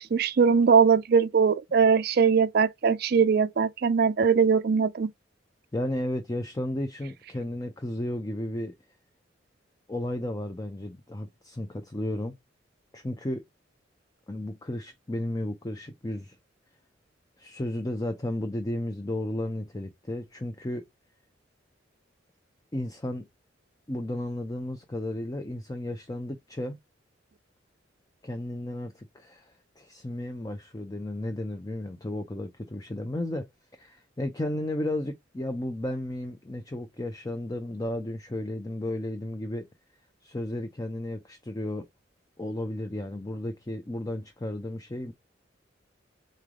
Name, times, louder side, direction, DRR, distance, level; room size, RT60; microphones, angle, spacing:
voice 1, 0.0-5.1, right 6 dB, 55° right, 0.4 m, -21 dB
voice 2, 5.7-8.7 9.9-12.3 12.9-13.4 14.3-16.4 17.4-20.8 22.7-23.3 23.9-26.8 28.2-33.5 33.8-39.7 40.2-41.9 42.4-45.1, left 1 dB, 20° left, 0.5 m, -33 dB
3.8 x 3.3 x 3.6 m
head